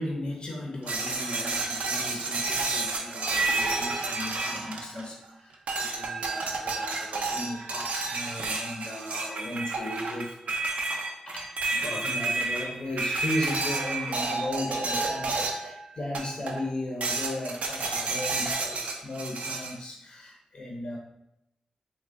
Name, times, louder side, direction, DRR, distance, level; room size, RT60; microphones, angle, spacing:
voice 1, 0.0-10.4 11.3-21.0, left 1 dB, 40° left, 0 dB, 0.5 m, -36 dB
sound 1, 0.9-5.2 5.7-15.7 16.1-16.7 17.0-19.8, right 3 dB, 85° right, 0.4 m, -30 dB
3.5 x 2.0 x 3.3 m, 0.83 s
wide cardioid pair, 170°, 2 cm